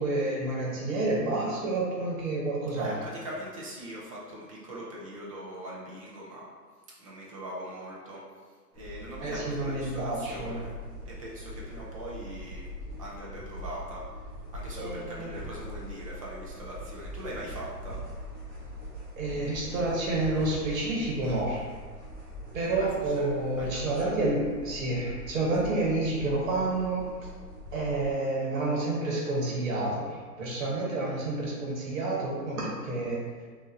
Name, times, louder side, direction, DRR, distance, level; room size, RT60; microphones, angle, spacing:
voice 1, 0.0-2.9 9.2-10.6 14.8-15.3 19.2-21.7 22.5-27.3 27.7-33.2, right 2 dB, 55° right, -4 dB, 1.3 m, -29 dB
voice 2, 2.7-6.5 7.0-10.7 11.0-12.6 13.0-14.2 14.5-18.0 22.8-23.3 23.6-24.1, right 1 dB, 20° right, -5 dB, 0.5 m, -41 dB
sound 1, 8.7-28.1, left 1 dB, 5° right, 1.1 m, -42 dB
5.4 x 2.8 x 2.7 m, 1.5 s
hypercardioid pair, 140°, 49 cm